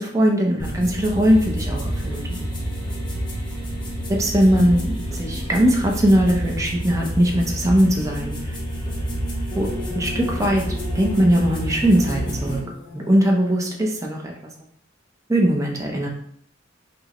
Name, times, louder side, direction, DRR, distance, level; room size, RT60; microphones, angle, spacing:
voice 1, 0.0-2.5 4.1-8.6 9.5-12.6 12.9-14.3 15.3-16.1, equal, 15° right, -1 dB, 0.6 m, -20 dB
sound 1, 0.6-12.6, equal, 25° left, 0.8 m, -28 dB
sound 2, 9.5-14.4, left 3 dB, 65° left, 0.5 m, -38 dB
6.1 x 2.1 x 2.9 m, 0.63 s
head